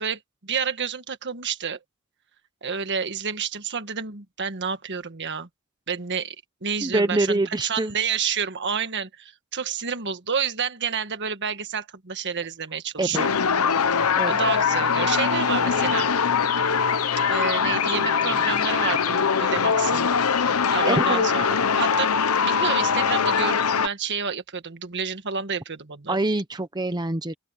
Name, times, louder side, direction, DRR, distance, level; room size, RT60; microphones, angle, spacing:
voice 1, 0.0-1.8 2.6-5.5 5.9-6.3 6.6-13.4 14.3-16.1 17.3-20.1 20.3-26.2, right 6 dB, 55° right, 1.6 m, -29 dB
voice 2, 6.8-7.9 13.0-13.2 14.1-14.3 20.8-21.3 26.1-27.3, right 2 dB, 20° right, 0.9 m, -25 dB
sound 1, 13.1-23.9, left 6 dB, 75° left, 0.9 m, -22 dB
open air
head